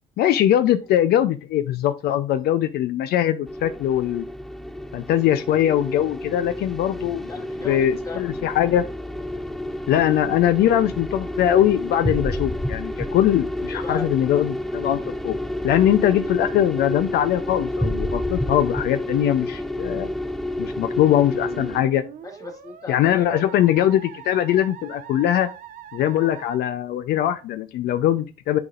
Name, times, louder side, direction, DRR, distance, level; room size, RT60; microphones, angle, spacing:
voice 1, 0.2-4.3 4.9-7.3 7.6-8.8 9.9-15.4 15.6-20.1 20.6-22.0 22.9-25.5 25.9-28.6, left 11 dB, 70° left, 10 dB, 0.5 m, -21 dB
sound 1, 3.5-21.8, left 1 dB, ahead, 0.4 m, -29 dB
voice 2, 7.2-8.3 13.6-14.1 22.2-23.4, left 3 dB, 20° left, 2 dB, 1.8 m, -36 dB
Musical instrument, 21.3-26.6, right 9 dB, 55° right, 1.0 m, -42 dB
9.5 x 4.0 x 2.4 m, 0.30 s
cardioid pair, 110°, 17 cm